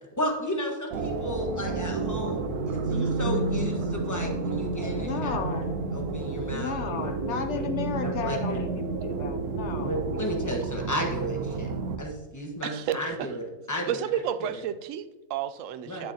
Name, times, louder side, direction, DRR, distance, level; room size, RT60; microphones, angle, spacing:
voice 1, 0.2-8.6 9.8-11.7 12.0-13.9 14.4-14.5 15.9-16.1, equal, 15° left, 0 dB, 1.3 m, -34 dB
sound 1, 0.9-12.0, right 3 dB, 85° right, 1.2 m, -30 dB
voice 2, 5.0-5.7 6.5-10.2, left 6 dB, 60° left, 6 dB, 0.8 m, -34 dB
voice 3, 12.6-13.3 13.9-16.1, right 9 dB, 70° right, 12 dB, 0.9 m, -31 dB
9.6 x 8.6 x 2.8 m, 1.0 s
omnidirectional pair, 1.5 m